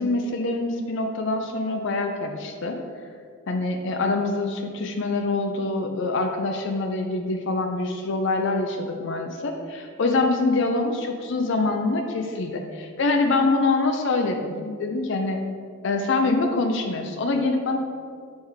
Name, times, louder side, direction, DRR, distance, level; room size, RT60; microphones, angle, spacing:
voice 1, 0.0-2.8 3.5-15.4 15.8-17.8, left 3 dB, 60° left, 4 dB, 0.5 m, -25 dB
6.3 x 3.4 x 4.9 m, 2.1 s
head